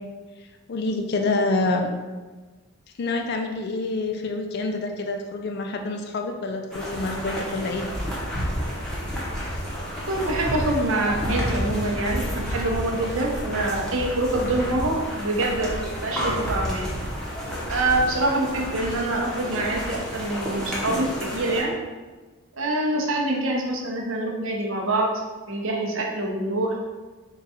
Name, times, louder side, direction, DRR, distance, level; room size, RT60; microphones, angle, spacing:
voice 1, 0.4-1.9 3.0-7.9 22.9-23.0, left 2 dB, 50° left, 4 dB, 0.4 m, -27 dB
sound 1, 6.7-21.6, equal, 5° left, 0.8 m, -30 dB
voice 2, 10.1-16.9 17.7-21.7 22.6-25.1 25.5-26.8, right 2 dB, 65° right, -1 dB, 0.7 m, -25 dB
3.9 x 2.3 x 4.2 m, 1.3 s
head